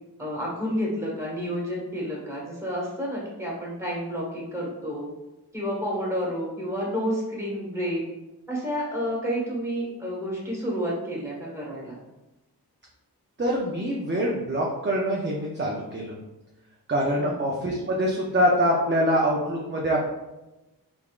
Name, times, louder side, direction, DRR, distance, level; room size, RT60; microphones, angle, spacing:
voice 1, 0.2-5.1 5.5-8.0 8.5-12.0 17.2-17.4, equal, 5° right, -4 dB, 1.4 m, -30 dB
voice 2, 13.4-16.1 16.9-20.0, equal, 30° right, -3 dB, 0.6 m, -24 dB
3.7 x 3.5 x 2.4 m, 1.0 s
wide cardioid pair, 50°, 39 cm